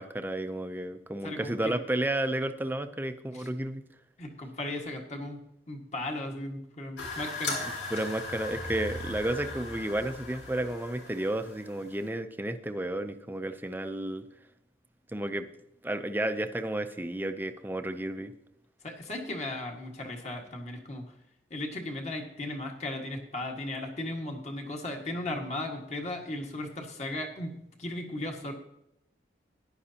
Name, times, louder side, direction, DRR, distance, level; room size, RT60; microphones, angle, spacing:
voice 1, 0.0-3.8 7.9-14.3 15.1-15.5 15.8-18.3, right 1 dB, 10° right, 9 dB, 0.5 m, -32 dB
voice 2, 1.2-1.8 3.3-3.5 4.2-5.4 5.7-7.6 18.8-21.1 21.5-28.5, left 1 dB, 40° left, 2 dB, 1.8 m, -36 dB
sound 1, 7.0-12.1, left 2 dB, 90° left, 3.3 m, -38 dB
14.5 x 10.5 x 2.9 m, 0.84 s
head